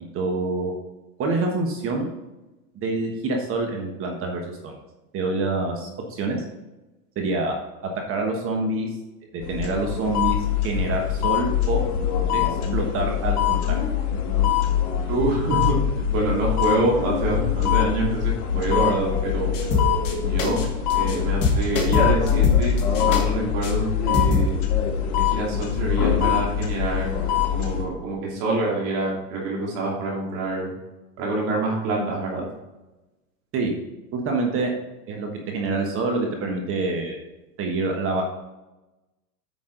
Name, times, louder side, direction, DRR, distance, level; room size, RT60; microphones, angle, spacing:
voice 1, 0.1-0.7 1.2-2.1 2.7-4.7 5.1-6.4 7.1-7.5 8.1-8.9 9.3-10.4 10.6-11.8 12.3-13.8 33.5-33.7 34.1-34.7 35.1-37.2 37.6-38.2, right 3 dB, 25° right, 2 dB, 1.3 m, -26 dB
sound 1, 9.4-27.8, left 9 dB, 65° left, 2.1 m, -23 dB
voice 2, 15.1-15.8 16.1-19.5 20.2-20.6 20.9-24.5 25.2-27.3 27.5-30.7 31.2-32.5, right 2 dB, 45° right, -3 dB, 2.7 m, -26 dB
sound 2, 19.5-20.1 20.4-20.6 20.9-21.2 21.4-23.2 23.6-23.7 24.1-24.5, left 4 dB, 30° left, 1.9 m, -23 dB
9.1 x 5.8 x 3.9 m, 1.0 s
supercardioid pair, 145°, 48 cm